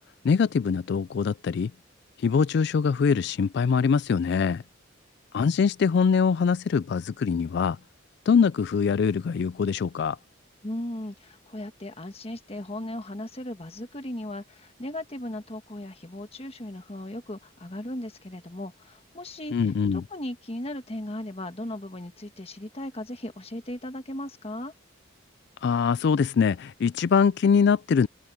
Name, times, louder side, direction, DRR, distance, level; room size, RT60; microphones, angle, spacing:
voice 1, 0.2-1.7 2.2-4.6 5.3-7.8 8.3-10.2 19.5-20.0 25.6-28.1, left 6 dB, 55° left, 0.3 m, -23 dB
voice 2, 10.6-24.7, left 1 dB, 30° left, 1.5 m, -37 dB
head